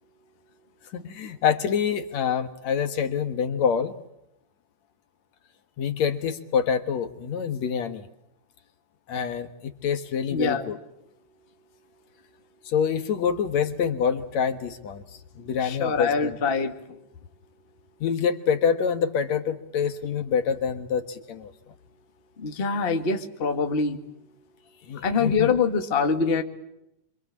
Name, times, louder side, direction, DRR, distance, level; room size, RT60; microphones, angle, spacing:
voice 1, 0.9-3.9 5.8-8.1 9.1-10.8 12.6-15.0 15.4-16.4 18.0-21.5 24.9-25.5, left 7 dB, 65° left, 9 dB, 2.5 m, -26 dB
voice 2, 10.3-10.6 15.6-16.7 22.4-24.0 25.0-26.4, left 5 dB, 25° left, 6 dB, 1.6 m, -24 dB
27.0 x 26.0 x 7.3 m, 0.81 s
omnidirectional pair, 3.6 m